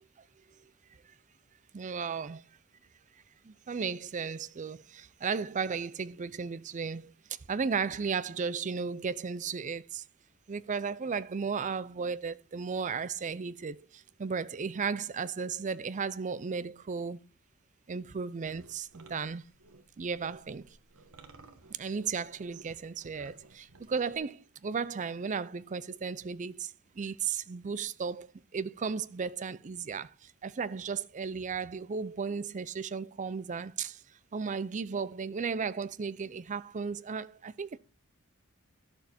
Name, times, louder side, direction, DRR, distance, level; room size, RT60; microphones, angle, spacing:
voice 1, 1.7-2.4 3.5-7.1 7.5-10.0 10.5-17.2 17.9-19.4 20.0-20.7 21.8-26.7 27.0-28.3 28.5-30.1 30.4-34.0 34.3-37.8, right 5 dB, 35° right, 0.5 m, -35 dB
sound 1, 18.4-24.2, right 3 dB, 85° right, 1.3 m, -56 dB
11.0 x 6.9 x 4.2 m
head